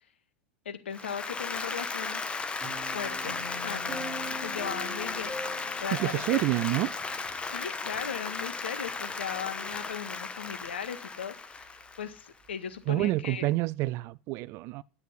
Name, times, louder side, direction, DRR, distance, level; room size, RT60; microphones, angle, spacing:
voice 1, 0.7-2.2 2.9-3.9 4.3-6.4 7.4-13.5, left 8 dB, 75° left, 1.8 m, -38 dB
Applause, 0.9-12.3, left 4 dB, 15° left, 1.5 m, -35 dB
sound 1, 2.6-8.0 8.4-8.5, right 1 dB, 20° right, 6.3 m, -43 dB
voice 2, 6.0-7.0 12.9-14.8, right 18 dB, 45° right, 0.6 m, -28 dB
11.0 x 8.6 x 9.8 m
hypercardioid pair, 90°, 6 cm